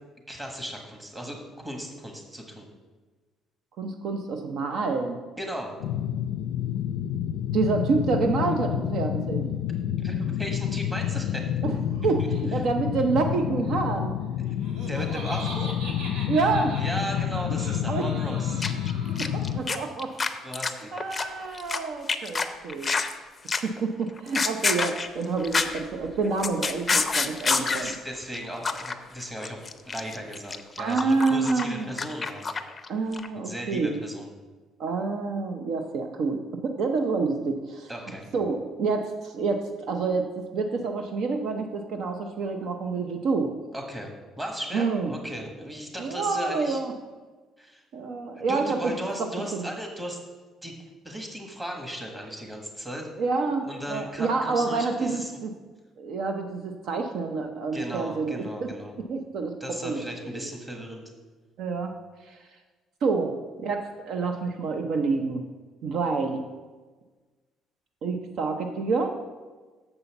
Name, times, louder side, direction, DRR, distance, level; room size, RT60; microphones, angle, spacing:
voice 1, 0.3-2.7 5.4-5.8 10.0-11.5 12.2-12.6 14.5-14.6 14.9-15.7 16.7-18.6 20.4-21.0 27.7-32.4 33.3-34.2 37.9-38.2 43.7-46.8 47.6-47.8 48.5-50.2 50.6-50.7 51.0-53.1 53.6-55.3 57.7-58.9 59.6-61.0, equal, 15° right, 2 dB, 1.5 m, -36 dB
voice 2, 3.8-5.2 7.5-9.5 11.6-14.1 16.3-16.8 17.9-18.0 19.1-20.1 20.9-22.9 23.6-27.9 30.8-31.9 32.9-34.0 34.8-37.9 38.3-43.5 44.7-45.1 46.0-46.9 47.9-48.9 49.2-49.7 53.2-55.5 56.0-58.7 59.0-59.6 59.8-60.1 60.3-60.5 61.6-61.9 62.2-62.4 63.0-65.4 65.8-66.4 68.0-69.2, right 4 dB, 60° right, 5 dB, 0.7 m, -28 dB
sound 1, 5.8-19.6, left 10 dB, 90° left, 0.4 m, -29 dB
Laughter, 14.4-19.7, right 2 dB, 85° right, 1.5 m, -41 dB
sound 2, 18.6-18.9 19.2-21.8 22.1-23.1 23.5-23.8 24.2-25.8 26.1-28.0 28.3-28.4 28.6-28.9 29.2-32.9 33.1-33.3, left 4 dB, 20° left, 0.5 m, -27 dB
6.8 x 5.5 x 7.0 m, 1.3 s
cardioid pair, 135°, 0 cm